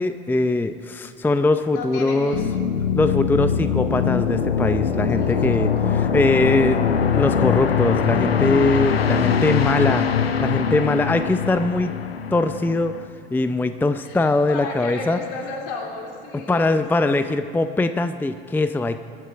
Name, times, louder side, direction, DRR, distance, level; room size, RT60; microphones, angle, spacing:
voice 1, 0.0-2.4 3.0-10.1 10.4-11.9 12.3-12.9 13.3-15.2 16.5-19.0, left 2 dB, 5° left, 10 dB, 0.6 m, -21 dB
voice 2, 1.7-2.6 5.2-5.3 8.7-9.1 10.2-10.3 14.0-17.4, left 3 dB, 65° left, 0 dB, 3.7 m, -34 dB
sound 1, 2.3-13.1, left 7 dB, 85° left, 0.7 m, -22 dB
23.0 x 8.2 x 7.0 m, 2.6 s
figure-of-eight pair, 70°, 29 cm